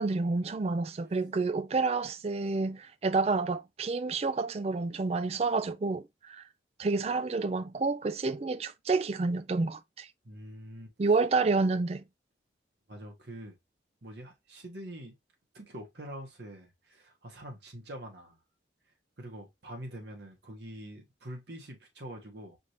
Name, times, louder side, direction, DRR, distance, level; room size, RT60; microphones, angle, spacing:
voice 1, 0.0-6.0 6.3-6.4 6.8-10.1 11.0-12.0, right 3 dB, 35° right, 0.3 m, -29 dB
voice 2, 10.2-10.9 12.9-13.6 14.0-15.1 15.5-18.4 19.2-22.6, right 1 dB, 65° right, 1.4 m, -45 dB
5.1 x 2.7 x 3.1 m
head